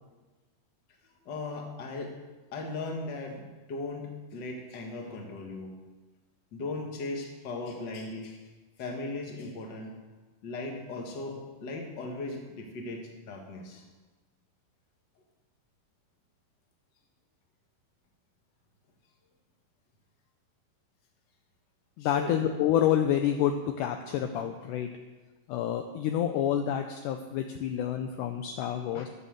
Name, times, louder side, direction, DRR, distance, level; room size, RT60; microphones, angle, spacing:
voice 1, 1.2-2.2 2.5-5.7 6.5-8.4 8.8-9.9 10.4-13.8 22.0-22.4, left 3 dB, 40° left, 2 dB, 1.6 m, -38 dB
voice 2, 22.0-24.9 25.5-29.1, left 10 dB, 80° left, 6 dB, 1.9 m, -28 dB
13.5 x 8.3 x 6.5 m, 1.3 s
omnidirectional pair, 4.3 m